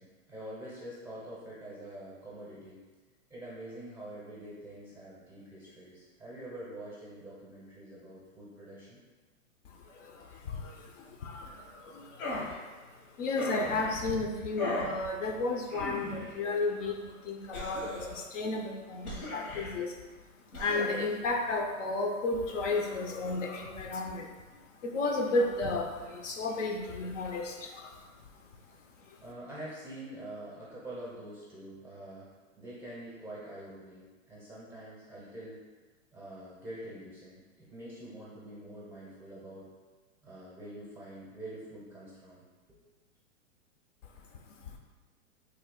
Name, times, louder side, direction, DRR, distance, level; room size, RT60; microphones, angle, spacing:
voice 1, 0.0-2.8 3.3-9.0 29.2-32.3 32.6-35.6 36.1-39.7 40.2-42.4, right 1 dB, 5° right, -8 dB, 0.6 m, -45 dB
voice 2, 9.6-20.0 20.3-29.2 44.0-44.8, left 3 dB, 60° left, 2 dB, 0.6 m, -34 dB
sound 1, 12.2-12.6 13.4-13.9 14.6-15.0 15.7-16.3 17.5-18.2 19.0-19.7 20.5-21.0, left 2 dB, 80° left, 1.2 m, -37 dB
3.3 x 2.2 x 3.6 m, 1.3 s
hypercardioid pair, 130°, 42 cm